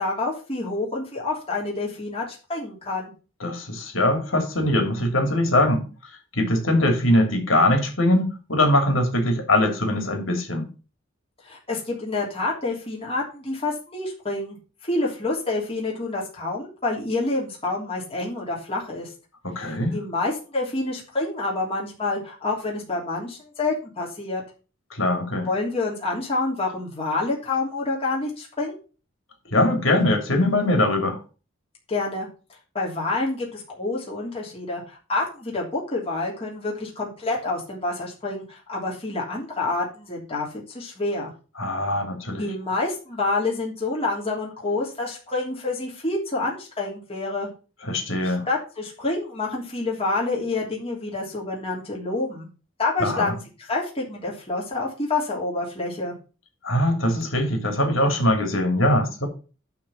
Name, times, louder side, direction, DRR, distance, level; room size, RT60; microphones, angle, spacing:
voice 1, 0.0-3.1 11.4-14.6 14.8-19.1 19.6-24.4 25.5-28.8 31.9-32.3 32.7-41.3 42.4-47.5 48.2-52.5 52.8-56.1, left 2 dB, 30° left, 3.2 m, -28 dB
voice 2, 3.4-5.8 6.3-10.7 19.4-20.0 24.9-25.5 29.5-31.2 41.6-42.4 47.8-48.5 53.0-53.4 56.6-59.3, left 1 dB, 75° left, 2.9 m, -22 dB
11.5 x 4.0 x 7.0 m
head